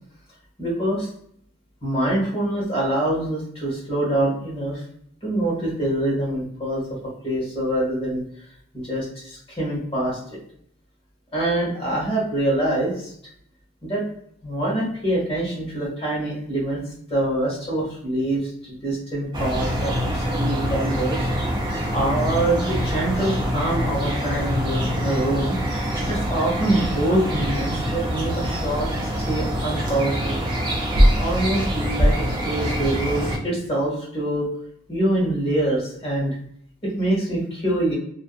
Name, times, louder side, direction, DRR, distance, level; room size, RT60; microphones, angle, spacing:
voice 1, 0.6-1.1 1.8-4.8 5.2-6.8 7.2-8.2 8.8-10.4 11.3-13.1 13.8-14.0 14.4-16.8 17.1-21.2 21.9-25.6 26.1-30.4 31.2-34.5 34.9-36.3 36.8-37.9, right 1 dB, 30° left, -5 dB, 1.1 m, -25 dB
sound 1, 19.3-33.4, equal, 20° right, 0.4 m, -24 dB
2.6 x 2.2 x 2.3 m, 0.67 s
head